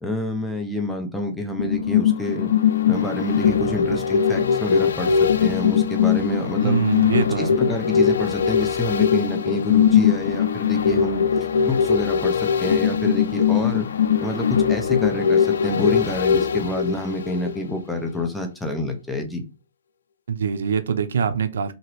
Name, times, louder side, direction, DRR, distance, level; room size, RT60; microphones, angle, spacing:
voice 1, 0.0-2.5 2.9-6.8 7.4-11.2 11.6-13.9 14.2-19.4, left 1 dB, 5° left, 0.4 m, -27 dB
sound 1, 1.6-17.8 18.2-18.3, left 7 dB, 85° left, 0.4 m, -21 dB
voice 2, 6.6-7.5 20.3-21.7, right 6 dB, 85° right, 0.5 m, -23 dB
2.8 x 2.5 x 3.1 m
hypercardioid pair, 170°, 0 cm